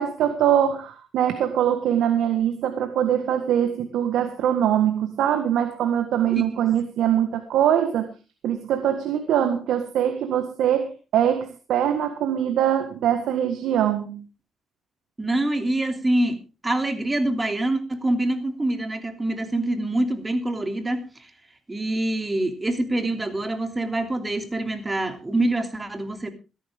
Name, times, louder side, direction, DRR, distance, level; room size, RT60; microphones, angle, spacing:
voice 1, 0.0-8.1 8.4-14.2, right 10 dB, 80° right, 8 dB, 1.6 m, -23 dB
voice 2, 6.2-6.7 15.2-16.4 16.6-21.3 21.7-26.3, right 1 dB, 20° right, 6 dB, 2.9 m, -25 dB
17.0 x 13.5 x 3.6 m, 0.32 s
cardioid pair, 90°, 0 cm